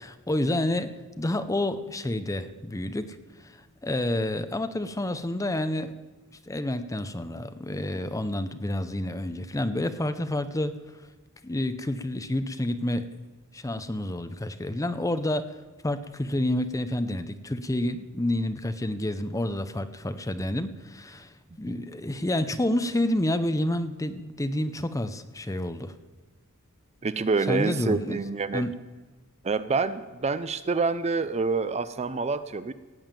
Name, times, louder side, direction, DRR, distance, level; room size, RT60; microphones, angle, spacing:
voice 1, 0.3-5.9 6.5-10.8 11.4-13.1 13.5-15.5 15.8-25.9 27.5-28.2 28.5-28.8, left 1 dB, 15° left, 10 dB, 0.7 m, -29 dB
voice 2, 27.0-28.7 29.4-32.7, right 4 dB, 30° right, 13 dB, 0.5 m, -27 dB
17.0 x 7.1 x 9.0 m, 1.3 s
head